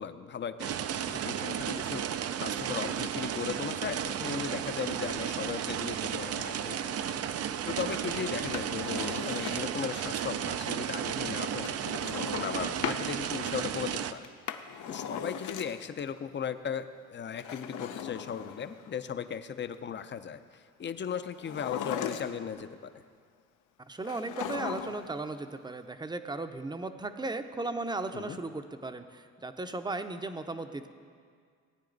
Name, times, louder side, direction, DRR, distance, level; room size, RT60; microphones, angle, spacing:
voice 1, 0.0-2.0 2.4-7.0 7.6-14.3 14.9-23.0 28.1-28.4, left 7 dB, 40° left, 11 dB, 0.6 m, -37 dB
sound 1, 0.6-14.1, right 9 dB, 55° right, 0.5 m, -33 dB
Drawer open or close, 8.4-9.9 11.6-13.1 14.2-16.0 17.3-18.9 21.4-22.6 24.0-25.2 25.4-25.5, left 8 dB, 80° left, 0.7 m, -38 dB
voice 2, 23.9-30.9, right 2 dB, 15° right, 8 dB, 0.7 m, -36 dB
17.0 x 9.5 x 4.0 m, 2.1 s
cardioid pair, 90°, 30 cm